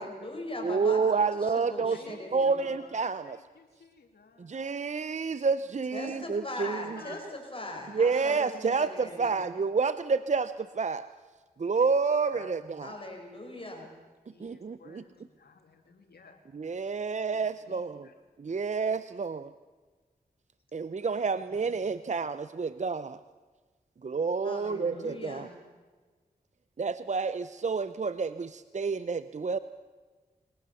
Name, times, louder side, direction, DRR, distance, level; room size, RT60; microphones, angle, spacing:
voice 1, 0.0-2.7 5.9-9.4 12.8-13.9 24.4-25.5, left 1 dB, 35° left, 1 dB, 5.6 m, -40 dB
voice 2, 0.6-2.0 2.3-3.4 4.4-7.0 7.9-11.1 11.6-12.9 14.4-15.0 16.5-18.1 18.4-19.5 20.7-23.2 24.0-25.5 26.8-29.6, right 5 dB, 45° right, 14 dB, 0.6 m, -29 dB
voice 3, 1.9-4.6 6.9-8.2 8.5-9.2 12.2-12.7 14.3-16.4 17.3-17.4 17.7-18.2 21.3-22.0, left 4 dB, 80° left, 4 dB, 2.4 m, -53 dB
22.5 x 18.0 x 7.1 m, 1.4 s
cardioid pair, 45°, 16 cm